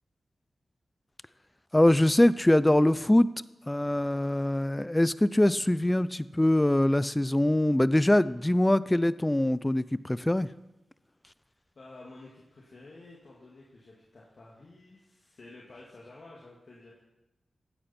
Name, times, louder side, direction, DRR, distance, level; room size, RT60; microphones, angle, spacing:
voice 1, 1.7-3.3 3.7-10.5, left 1 dB, 15° left, 17 dB, 0.5 m, -23 dB
voice 2, 11.8-17.0, left 2 dB, 60° left, -4 dB, 2.3 m, -51 dB
15.5 x 9.8 x 4.4 m, 0.98 s
cardioid pair, 55°, 0 cm